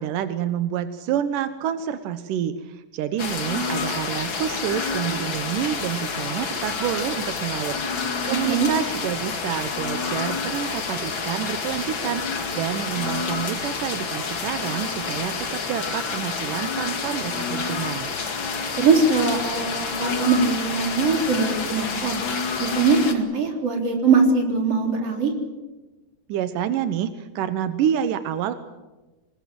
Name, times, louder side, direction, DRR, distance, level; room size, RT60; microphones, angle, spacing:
voice 1, 0.0-7.8 8.2-18.1 26.3-28.5, right 10 dB, 90° right, 11 dB, 2.6 m, -28 dB
sound 1, 3.2-23.1, left 5 dB, 40° left, 2.5 m, -29 dB
voice 2, 18.8-22.2 22.6-25.3, right 4 dB, 50° right, 3 dB, 4.7 m, -21 dB
25.5 x 20.5 x 7.7 m, 1.1 s
omnidirectional pair, 3.7 m